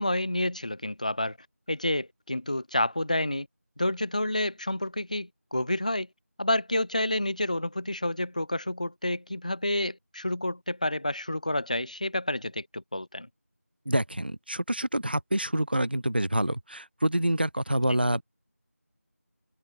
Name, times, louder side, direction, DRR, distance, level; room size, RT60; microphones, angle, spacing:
voice 1, 0.0-1.4 1.7-3.5 3.8-6.1 6.4-13.3, left 1 dB, 30° left, 3.1 m, -29 dB
voice 2, 13.8-18.2, right 1 dB, 40° right, 1.6 m, -27 dB
open air
figure-of-eight pair, 175°, 8 cm